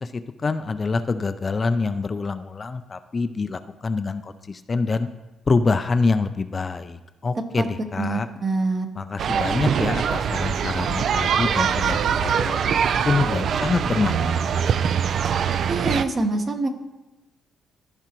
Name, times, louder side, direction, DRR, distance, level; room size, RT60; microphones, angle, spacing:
voice 1, 0.0-5.1 5.5-8.3 8.9-14.9, left 4 dB, 35° left, 10 dB, 0.4 m, -26 dB
voice 2, 8.0-8.9 15.7-16.7, right 3 dB, 40° right, 5 dB, 1.0 m, -25 dB
sound 1, 9.2-16.0, right 7 dB, 60° right, 0.3 m, -23 dB
14.0 x 4.8 x 3.0 m, 1.0 s
cardioid pair, 90°, 0 cm